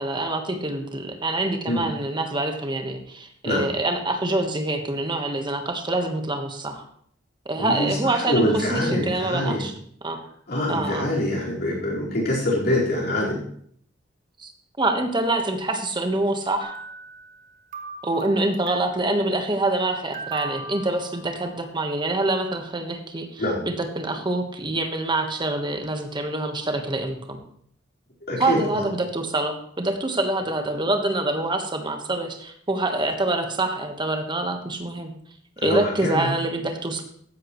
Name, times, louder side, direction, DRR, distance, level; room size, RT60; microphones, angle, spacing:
voice 1, 0.0-6.8 7.4-9.8 10.0-10.2 10.7-11.1 14.4-14.5 14.8-16.8 18.0-27.4 28.4-35.1 35.6-37.0, right 2 dB, 25° right, 5 dB, 1.3 m, -26 dB
voice 2, 7.6-9.6 10.5-13.4 23.4-23.6 28.3-28.8 35.6-36.3, left 1 dB, 60° left, -5 dB, 4.5 m, -24 dB
sound 1, 16.6-17.4 17.7-19.1 20.1-21.7, right 4 dB, 45° right, 1.5 m, -39 dB
14.5 x 10.5 x 3.2 m, 0.64 s
head